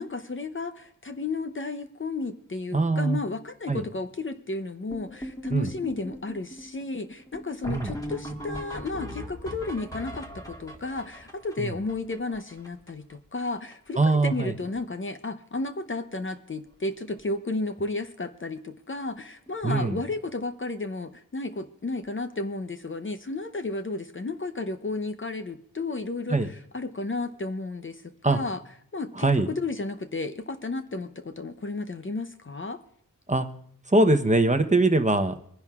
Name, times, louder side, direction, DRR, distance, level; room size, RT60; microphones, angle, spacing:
voice 1, 0.0-28.6 28.9-32.8, left 3 dB, 35° left, 9 dB, 0.7 m, -33 dB
voice 2, 2.7-3.2 3.7-3.8 5.5-5.7 7.7-7.9 11.6-11.7 14.0-14.5 19.6-20.0 26.3-26.5 28.2-28.4 29.1-29.5 33.3-33.5 33.9-35.3, right 2 dB, 20° right, 7 dB, 0.8 m, -22 dB
sound 1, 4.9-13.1 13.4-13.5 13.7-14.0 14.2-14.8 15.1-15.3 16.1-16.2 16.7-16.8 17.0-17.2 19.5-19.6 21.9-22.0, equal, 10° left, 1.8 m, -40 dB
24.0 x 10.5 x 2.4 m, 0.66 s
wide cardioid pair, 90°, 34 cm